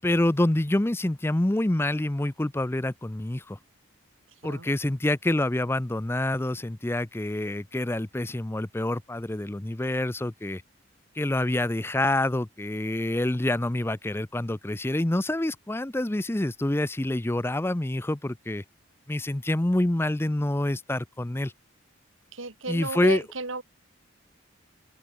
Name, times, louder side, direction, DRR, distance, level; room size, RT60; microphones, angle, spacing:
voice 1, 0.0-3.6 4.4-10.6 11.1-18.6 19.1-21.5 22.7-23.2, left 1 dB, 10° left, 0.5 m, -27 dB
voice 2, 22.3-23.6, right 3 dB, 80° right, 3.9 m, -34 dB
open air
head